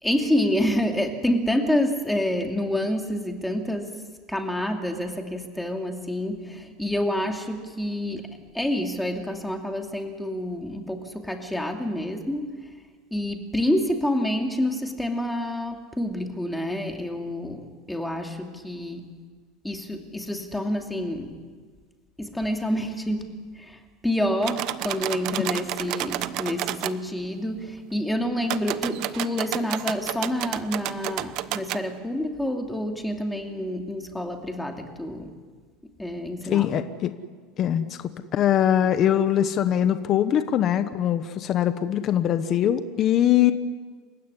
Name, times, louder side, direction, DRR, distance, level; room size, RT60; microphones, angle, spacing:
voice 1, 0.0-4.0 4.3-12.6 13.1-19.1 19.6-21.4 22.2-35.3 36.0-36.7, left 1 dB, 5° left, 3 dB, 2.6 m, -28 dB
sound 1, 24.4-27.0 28.4-31.8, right 15 dB, 50° right, 1.0 m, -31 dB
voice 2, 36.5-37.1 37.6-38.0 38.3-43.5, left 10 dB, 35° left, 10 dB, 1.1 m, -22 dB
28.5 x 16.0 x 9.9 m, 1.5 s
supercardioid pair, 145°, 0 cm